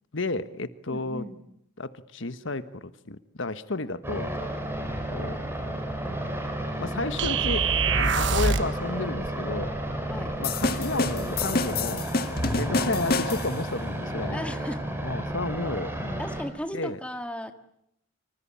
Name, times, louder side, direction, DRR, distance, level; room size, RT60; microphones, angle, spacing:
voice 1, 0.1-1.2 1.8-4.3 5.1-5.4 6.8-9.7 10.4-12.1 12.5-14.4 15.0-16.2 16.7-17.0, left 3 dB, 70° left, 12 dB, 1.3 m, -32 dB
voice 2, 0.9-1.4 6.9-7.0 10.0-10.4 14.3-15.0 16.2-17.5, equal, 5° left, 7 dB, 1.8 m, -36 dB
sound 1, 4.0-16.4, right 1 dB, 10° right, 5.2 m, -32 dB
sound 2, 7.2-8.8, right 5 dB, 65° right, 1.4 m, -24 dB
sound 3, 10.4-13.7, left 3 dB, 45° left, 1.9 m, -28 dB
26.0 x 26.0 x 8.7 m, 0.74 s
head